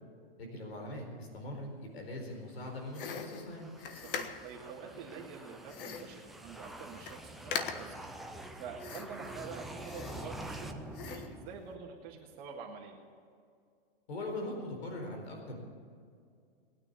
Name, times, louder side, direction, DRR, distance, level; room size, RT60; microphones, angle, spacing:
voice 1, 0.4-3.7 14.1-15.6, left 1 dB, 75° left, 2 dB, 4.3 m, -41 dB
sound 1, 2.6-12.0, right 1 dB, ahead, 0.4 m, -47 dB
sound 2, 2.9-4.6 5.7-6.2 6.6-6.7 6.9-7.2 7.5-8.0 8.8-9.3 9.8-10.6 10.9-11.4, left 6 dB, 55° left, 1.5 m, -41 dB
voice 2, 4.0-13.0, right 6 dB, 35° right, -1 dB, 1.8 m, -47 dB
20.0 x 9.7 x 6.9 m, 2.3 s
hypercardioid pair, 140°, 31 cm